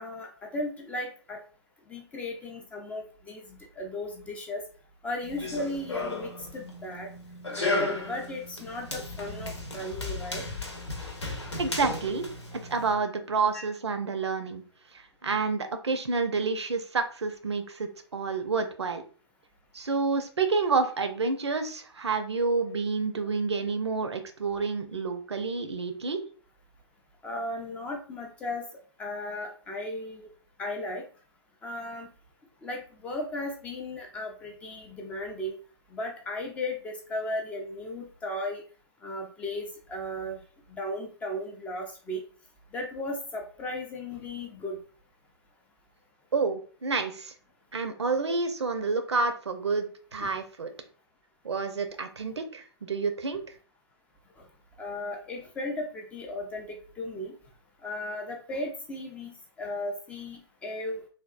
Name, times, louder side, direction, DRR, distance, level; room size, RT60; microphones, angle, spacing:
voice 1, 0.0-1.4 1.9-4.6 5.0-7.1 7.6-10.4 13.5-13.7 22.7-22.8 27.2-28.6 29.0-30.3 30.6-31.0 31.6-32.1 32.6-35.6 35.9-38.6 39.0-40.4 40.7-42.2 42.7-44.8 50.2-50.4 54.4-54.5 54.8-57.4 57.8-61.0, left 1 dB, 10° left, 2 dB, 0.3 m, -36 dB
Run, 5.2-12.9, left 2 dB, 80° left, 0.8 m, -34 dB
voice 2, 11.6-12.3 12.5-14.6 14.9-19.0 19.7-26.2 46.3-47.3 47.7-50.7 51.4-53.4, right 4 dB, 75° right, 8 dB, 0.5 m, -29 dB
3.4 x 2.3 x 2.3 m, 0.40 s
figure-of-eight pair, 120°, 14 cm